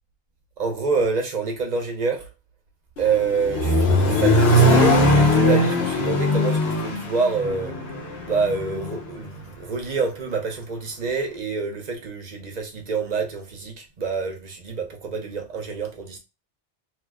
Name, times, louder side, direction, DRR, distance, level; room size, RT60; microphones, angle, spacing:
voice 1, 0.6-2.3 3.0-7.7 8.2-16.2, right 4 dB, 45° right, 0.7 m, -27 dB
Accelerating revving vroom, 3.0-9.0, left 1 dB, 65° left, 1.0 m, -20 dB
2.8 x 2.1 x 3.4 m
omnidirectional pair, 1.1 m